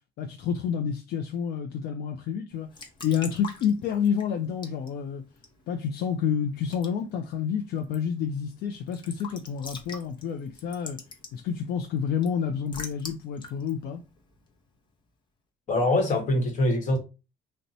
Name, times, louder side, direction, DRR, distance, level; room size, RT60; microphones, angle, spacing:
voice 1, 0.2-5.2 5.7-11.0 11.3-14.0, left 7 dB, 70° left, 0.4 m, -29 dB
Raindrop / Drip / Trickle dribble, 2.5-15.0, left 4 dB, 25° left, 0.7 m, -47 dB
voice 2, 15.7-17.0, left 1 dB, 50° left, 1.1 m, -23 dB
2.6 x 2.1 x 4.0 m
cardioid pair, 110°, 17 cm